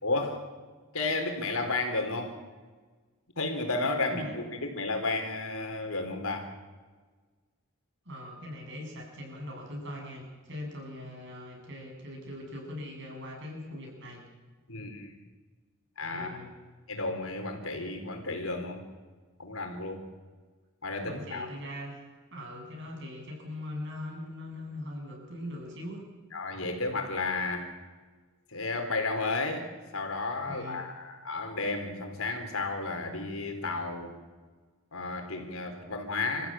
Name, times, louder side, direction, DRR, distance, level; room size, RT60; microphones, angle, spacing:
voice 1, 0.0-0.5 0.9-2.4 3.4-6.5 14.7-15.2 16.0-16.4 16.9-18.8 19.4-20.0 20.8-21.5 26.3-27.7 28.5-34.1 34.9-36.5, left 3 dB, 80° left, 4 dB, 4.2 m, -32 dB
voice 2, 8.1-14.2 16.1-16.5 21.0-22.0 22.3-26.0 30.5-30.9, left 1 dB, 55° right, 0 dB, 7.9 m, -41 dB
27.5 x 15.0 x 8.9 m, 1.4 s
head